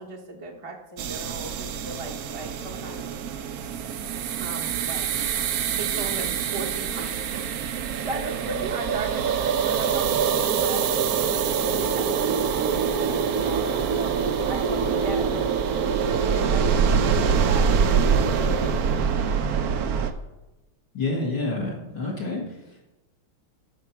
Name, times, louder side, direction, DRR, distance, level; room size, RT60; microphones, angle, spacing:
voice 1, 0.0-3.1 4.4-5.1 5.7-15.5 15.8-17.7 18.1-18.8, right 2 dB, 25° right, 0 dB, 0.7 m, -36 dB
sound 1, 1.0-20.1, right 6 dB, 65° right, 0.9 m, -25 dB
voice 2, 20.9-22.9, left 2 dB, 55° left, -3 dB, 2.4 m, -29 dB
13.0 x 4.6 x 5.9 m, 1.0 s
omnidirectional pair, 2.2 m